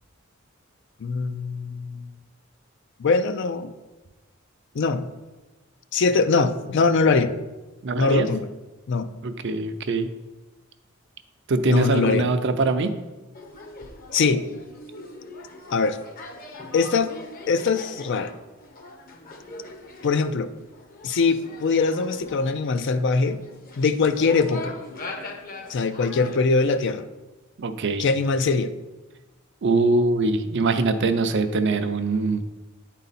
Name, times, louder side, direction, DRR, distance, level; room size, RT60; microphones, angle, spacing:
voice 1, 1.0-2.0 3.0-3.7 4.7-5.1 5.9-7.3 8.0-8.5 8.9-9.1 11.7-12.3 14.1-14.4 15.7-16.0 16.7-17.1 17.5-18.3 20.0-20.5 21.0-23.4 23.8-24.7 25.7-27.0 28.0-28.7, left 4 dB, 60° left, 11 dB, 0.4 m, -22 dB
voice 2, 7.8-8.3 9.2-10.1 11.5-12.9 27.6-28.0 29.6-32.4, right 3 dB, 60° right, 8 dB, 0.5 m, -23 dB
sound 1, 13.3-26.4, left 2 dB, 45° left, 0.8 m, -41 dB
9.1 x 4.1 x 4.1 m, 1.1 s
head